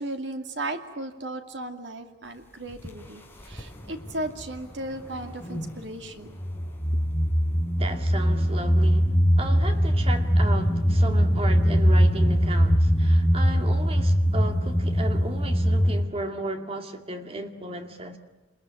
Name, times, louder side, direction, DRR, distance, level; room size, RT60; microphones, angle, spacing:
voice 1, 0.0-6.4 6.9-7.3, right 1 dB, 75° right, 2.5 m, -36 dB
sound 1, 2.7-2.9 3.4-4.5 4.9-5.8 6.4-16.0, equal, 10° left, 4.1 m, -22 dB
voice 2, 7.6-18.2, right 2 dB, 30° right, 2.3 m, -35 dB
27.5 x 21.5 x 9.6 m
head